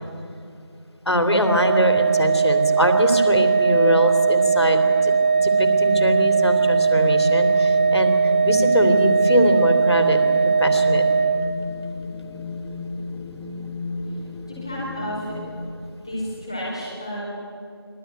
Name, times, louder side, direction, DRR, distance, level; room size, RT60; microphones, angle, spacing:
voice 1, 1.0-11.0, equal, 90° left, 7 dB, 3.1 m, -22 dB
Organ, 1.3-12.0, right 5 dB, 25° right, 0.7 m, -19 dB
Wind, 5.4-15.4, left 3 dB, 10° right, 1.2 m, -33 dB
voice 2, 14.5-15.4 16.0-17.2, equal, 10° left, -7 dB, 4.0 m, -31 dB
24.5 x 17.0 x 9.2 m, 2.6 s
figure-of-eight pair, 175°, 14 cm